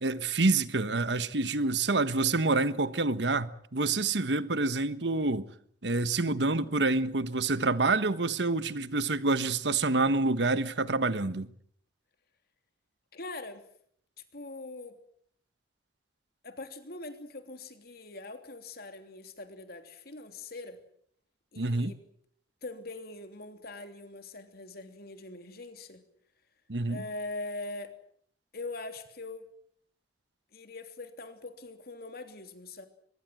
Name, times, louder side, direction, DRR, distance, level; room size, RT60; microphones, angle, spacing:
voice 1, 0.0-5.5 5.8-11.5 21.6-21.9 26.7-27.0, right 3 dB, 80° right, 1.3 m, -27 dB
voice 2, 2.3-2.6 13.1-13.6 14.3-15.0 16.4-20.8 21.5-22.0 22.6-26.0 26.9-27.9 28.5-29.5 30.5-32.9, left 2 dB, 60° left, 3.2 m, -42 dB
24.0 x 21.5 x 7.8 m
head